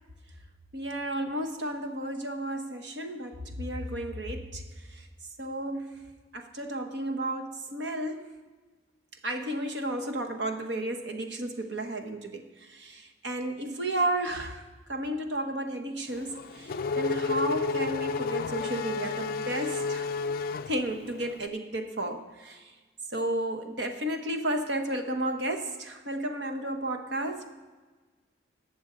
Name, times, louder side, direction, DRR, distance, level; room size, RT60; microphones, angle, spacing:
voice 1, 0.7-4.6 5.4-5.9 6.3-8.3 9.2-12.4 12.7-14.6 14.9-20.1 20.7-22.6 23.1-27.5, right 1 dB, 60° right, 5 dB, 1.2 m, -32 dB
Race car auto racing / Accelerating revving vroom, 16.1-21.4, left 4 dB, 50° left, 0.3 m, -31 dB
19.5 x 7.0 x 3.9 m, 1.3 s
head